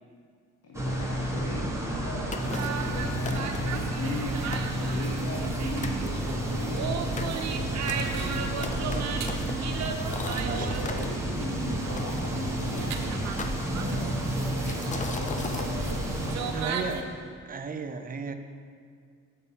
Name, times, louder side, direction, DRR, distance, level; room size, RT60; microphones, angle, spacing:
voice 1, 0.6-4.3 4.8-6.8 7.2-9.2 10.2-13.2 13.7-17.0, left 3 dB, 55° left, -2 dB, 1.0 m, -40 dB
sound 1, 0.7-17.1, right 1 dB, 10° right, 1.1 m, -31 dB
sound 2, 2.3-2.9 3.2-3.8 4.2-4.3 4.5-5.6 5.8-6.1 6.6-11.1 12.0-12.8 13.4-14.1 14.6-15.7, left 4 dB, 25° left, 0.5 m, -39 dB
sound 3, 2.4-17.0, right 6 dB, 65° right, 0.7 m, -36 dB
voice 2, 10.4-10.7 16.4-17.0 17.5-18.3, right 5 dB, 30° right, 8 dB, 0.6 m, -35 dB
6.7 x 5.3 x 5.6 m, 2.1 s
cardioid pair, 90°, 30 cm